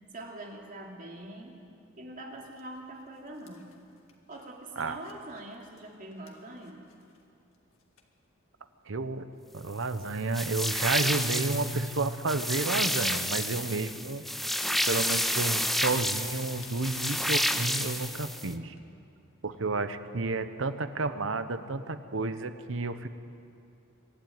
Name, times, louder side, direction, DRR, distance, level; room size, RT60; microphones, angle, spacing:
voice 1, 0.1-1.6 2.0-3.7 4.3-6.8 19.7-19.8, right 1 dB, 40° right, 0 dB, 2.9 m, -43 dB
sound 1, 2.3-2.6 3.0-7.2 7.5-7.6 7.8-8.1 9.3-10.2 10.8-11.3 11.6-11.7 12.0-12.7 13.0-18.2 18.8-18.9, left 7 dB, 80° left, 2.0 m, -53 dB
voice 2, 8.9-9.3 9.5-14.2 14.8-18.7 19.4-23.1, right 3 dB, 70° right, 10 dB, 1.0 m, -31 dB
sound 2, 10.3-18.5, equal, ahead, 0.6 m, -30 dB
24.5 x 12.5 x 9.4 m, 2.6 s
head